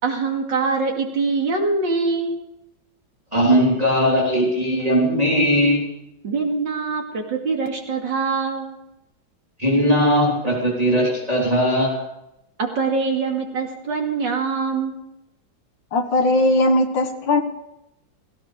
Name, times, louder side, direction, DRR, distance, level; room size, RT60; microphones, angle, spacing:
voice 1, 0.0-2.4 6.2-8.7 12.6-15.0, right 4 dB, 65° right, 1 dB, 3.0 m, -23 dB
voice 2, 3.3-5.8 9.6-12.0, equal, 20° right, -3 dB, 3.5 m, -19 dB
voice 3, 15.9-17.4, left 2 dB, 65° left, 6 dB, 2.2 m, -18 dB
17.0 x 16.5 x 5.0 m, 0.87 s
omnidirectional pair, 2.1 m